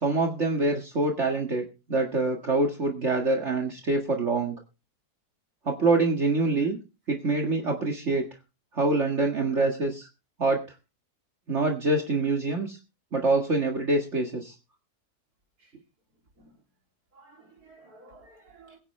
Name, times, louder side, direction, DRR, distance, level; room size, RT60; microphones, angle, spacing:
voice 1, 0.0-4.6 5.7-6.8 7.1-8.3 8.7-10.1 10.4-10.6 11.5-12.8 13.1-14.6, right 2 dB, 45° right, 2.1 m, -25 dB
voice 2, 17.1-18.8, right 2 dB, 65° right, 3.7 m, -53 dB
22.0 x 9.8 x 3.3 m
omnidirectional pair, 1.7 m